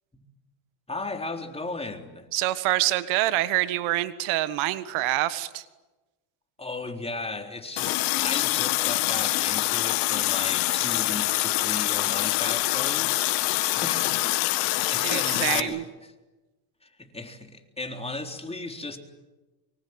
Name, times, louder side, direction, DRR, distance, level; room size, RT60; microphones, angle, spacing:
voice 1, 0.9-2.3 6.6-16.1 16.8-19.0, left 3 dB, 10° left, 4 dB, 3.9 m, -36 dB
voice 2, 2.3-5.6 15.0-15.8, right 16 dB, 85° right, 14 dB, 1.6 m, -26 dB
Water tap faucet, 7.8-15.6, left 19 dB, 80° left, 1.8 m, -25 dB
25.5 x 23.5 x 9.6 m, 1.1 s
supercardioid pair, 95°, 47 cm